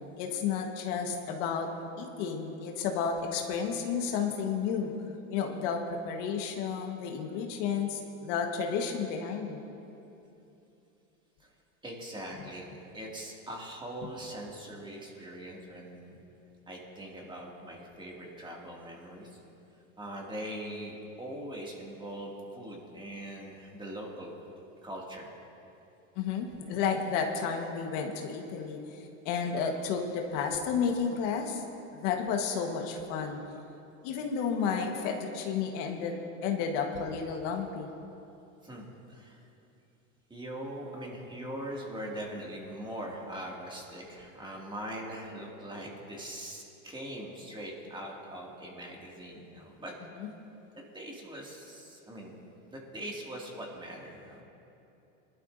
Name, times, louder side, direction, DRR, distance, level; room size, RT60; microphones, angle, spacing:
voice 1, 0.2-1.7 2.0-4.9 5.3-9.6 26.2-31.6 32.0-33.4 34.0-36.1 36.4-37.9 50.2-50.3, left 6 dB, 65° left, 3 dB, 1.4 m, -32 dB
voice 2, 11.8-16.2 16.7-19.4 20.0-24.5 24.8-25.3 38.6-39.5 40.3-49.9 50.9-52.4 52.7-54.4, right 1 dB, 10° right, -2 dB, 2.2 m, -41 dB
20.5 x 12.0 x 2.6 m, 2.9 s
supercardioid pair, 120°, 39 cm